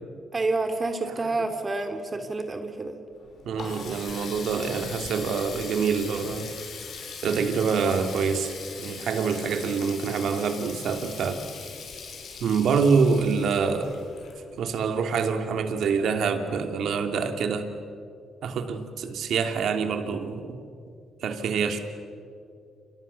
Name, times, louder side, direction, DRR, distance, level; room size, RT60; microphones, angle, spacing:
voice 1, 0.3-3.0, right 3 dB, 30° right, 6 dB, 2.6 m, -28 dB
Water tap faucet, 3.1-14.8, left 5 dB, 65° left, 6.2 m, -40 dB
voice 2, 3.4-6.5 7.2-11.4 12.4-14.0 14.6-17.7 18.4-20.6 21.2-21.8, right 5 dB, 70° right, 6 dB, 2.8 m, -26 dB
28.5 x 27.5 x 7.0 m, 2.4 s
cardioid pair, 90°, 0 cm